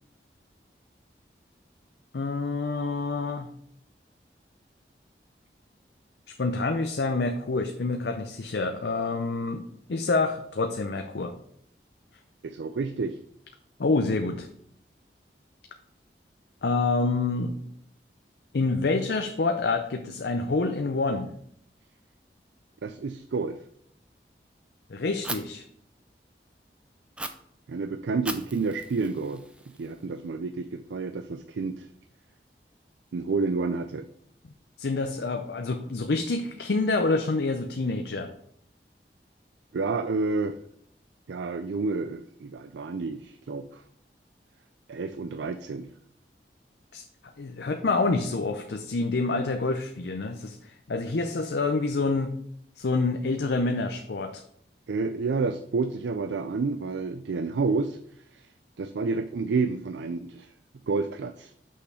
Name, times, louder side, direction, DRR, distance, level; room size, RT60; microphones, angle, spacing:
voice 1, 2.1-3.5 6.4-9.6 9.9-11.3 13.8-14.5 16.6-17.5 18.5-21.3 24.9-25.6 34.8-38.3 46.9-47.0 47.4-52.3 52.8-54.4, left 3 dB, 75° left, 5 dB, 0.6 m, -27 dB
voice 2, 12.4-13.2 22.8-23.6 27.7-29.4 29.8-31.9 33.1-34.1 39.7-40.6 41.3-43.8 44.9-45.9 54.9-58.0 58.3-58.4 58.8-60.5 60.9-61.5, right 4 dB, 90° right, 10 dB, 0.4 m, -29 dB
Fire, 25.2-25.4 27.2-27.3 28.3-30.2, right 2 dB, 5° right, 0.4 m, -38 dB
6.4 x 5.7 x 4.8 m, 0.66 s
head